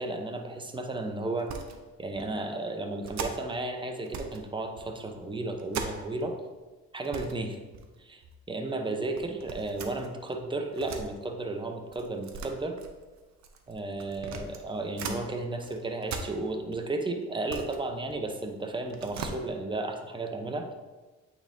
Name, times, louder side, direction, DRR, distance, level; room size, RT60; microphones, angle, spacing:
voice 1, 0.0-1.5 2.0-6.3 6.9-7.6 8.0-8.2 8.5-12.8 13.7-20.7, right 2 dB, 15° right, 4 dB, 0.8 m, -33 dB
sound 1, 1.4-1.8 2.1-2.3 3.0-3.6 4.1-4.5 4.8-6.3 6.6-6.7 7.0-7.4 7.7-8.4 9.2-11.1 11.9-15.2 15.6-16.8 17.2-18.5 18.8-19.4, right 5 dB, 65° right, 0.8 m, -40 dB
8.7 x 4.3 x 2.7 m, 1.3 s
cardioid pair, 90°, 30 cm